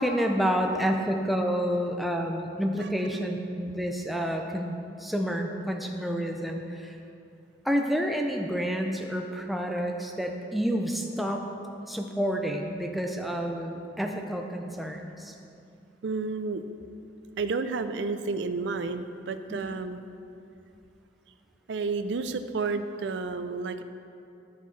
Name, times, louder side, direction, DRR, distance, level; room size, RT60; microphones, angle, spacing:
voice 1, 0.0-7.0 7.6-11.5 11.9-15.3 19.5-19.6, equal, ahead, 2 dB, 0.5 m, -29 dB
voice 2, 16.0-16.6 17.4-20.0 21.7-23.8, right 4 dB, 80° right, 10 dB, 0.4 m, -31 dB
14.0 x 5.6 x 3.2 m, 2.6 s
head